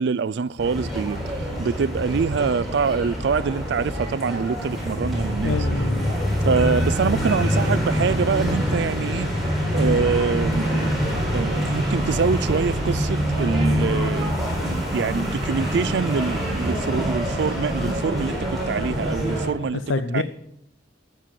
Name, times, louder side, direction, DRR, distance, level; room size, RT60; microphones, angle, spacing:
voice 1, 0.0-5.6 6.4-9.3 9.7-14.4 14.9-19.8 20.1-20.2, right 5 dB, 65° right, 0.4 m, -25 dB
sound 1, 0.6-19.5, equal, ahead, 4.0 m, -25 dB
voice 2, 5.4-6.1 19.7-20.2, left 3 dB, 85° left, 0.5 m, -26 dB
13.5 x 6.9 x 7.6 m
head